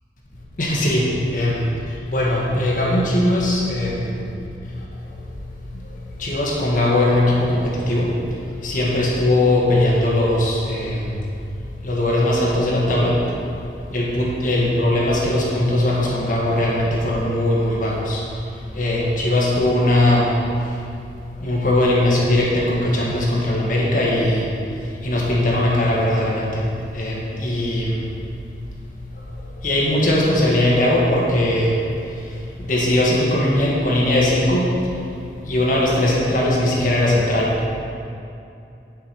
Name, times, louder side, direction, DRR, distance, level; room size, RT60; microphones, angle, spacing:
voice 1, 0.6-1.7 2.1-4.2 6.2-8.1 8.6-11.1 11.8-13.2 13.9-18.2 18.7-20.3 21.4-24.5 25.0-26.6 26.9-28.0 29.6-31.8 32.6-34.7 35.5-37.5, left 1 dB, 50° left, -4 dB, 1.5 m, -19 dB
9.7 x 5.5 x 4.5 m, 2.7 s
head